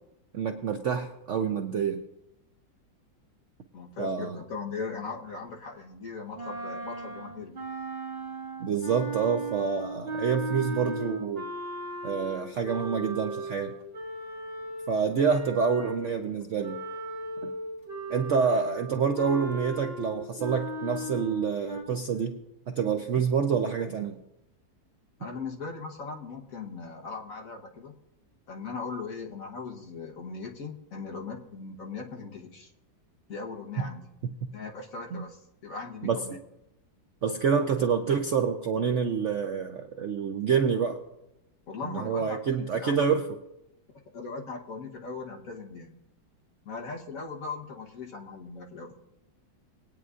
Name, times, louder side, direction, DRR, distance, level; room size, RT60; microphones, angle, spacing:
voice 1, 0.3-2.0 4.0-4.4 8.6-11.5 12.0-13.7 14.9-16.8 17.4-17.5 18.1-22.4 22.7-24.2 33.8-33.9 34.2-34.5 35.1-35.2 36.0-36.2 37.2-41.0 41.8-43.2, right 6 dB, 90° right, 5 dB, 0.6 m, -27 dB
voice 2, 3.7-7.5 25.2-27.9 28.5-32.7 33.3-34.1 34.5-36.4 41.7-43.1 44.1-46.0 46.6-48.9, left 4 dB, 50° left, 0 dB, 1.4 m, -39 dB
sound 1, 6.3-16.2 16.6-21.8, right 1 dB, 30° right, 2.0 m, -37 dB
21.0 x 9.3 x 2.5 m, 0.89 s
omnidirectional pair, 2.1 m